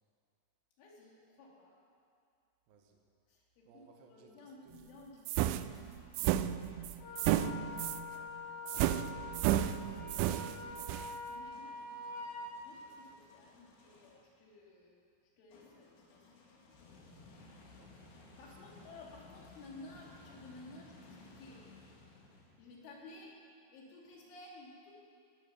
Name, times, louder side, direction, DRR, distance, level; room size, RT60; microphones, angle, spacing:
voice 1, 0.8-1.7 3.3-6.3 6.6-9.1 10.6-10.8 11.3-12.0 12.6-15.0 15.4-16.2 18.4-21.6 22.6-23.3 23.7-24.9, left 2 dB, 90° left, -3 dB, 4.9 m, -55 dB
voice 2, 2.7-3.0 3.7-4.9 10.2-10.9 17.8-18.1 18.5-18.9, right 5 dB, 65° right, 2 dB, 2.6 m, -63 dB
sound 1, 4.7-6.4 7.3-14.3 15.5-22.8, left 3 dB, 70° left, 3.9 m, -60 dB
sound 2, 5.3-8.1 8.7-11.1, right 12 dB, 85° right, 2.9 m, -32 dB
Wind instrument woodwind instrument, 7.0-12.5, left 3 dB, 50° left, 3.0 m, -45 dB
16.5 x 11.5 x 6.7 m, 2.4 s
omnidirectional pair, 5.4 m